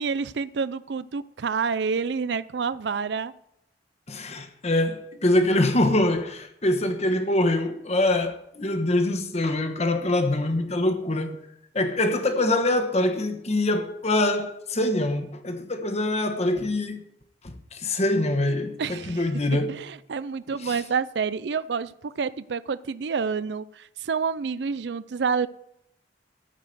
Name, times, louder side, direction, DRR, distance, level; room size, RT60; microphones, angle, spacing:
voice 1, 0.0-3.3 18.8-19.3 19.7-25.5, right 5 dB, 70° right, 0.5 m, -28 dB
voice 2, 4.1-11.4 11.7-17.0 17.4-19.8 20.4-20.8, left 1 dB, 40° left, 1.3 m, -24 dB
14.0 x 5.1 x 9.3 m
head